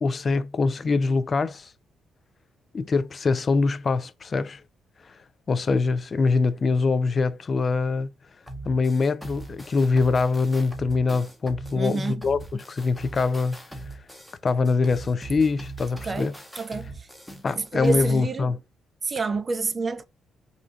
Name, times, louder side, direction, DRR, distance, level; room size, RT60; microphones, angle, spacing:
voice 1, 0.0-1.7 2.7-4.6 5.0-5.2 5.5-8.1 8.6-13.6 14.4-16.3 17.4-18.6, left 4 dB, 40° left, 0.3 m, -24 dB
sound 1, 8.5-18.1, right 2 dB, ahead, 0.7 m, -41 dB
voice 2, 11.7-12.2 16.0-17.1 17.5-18.5 19.0-20.0, right 4 dB, 35° right, 0.4 m, -28 dB
3.7 x 2.2 x 2.5 m
cardioid pair, 90°, 0 cm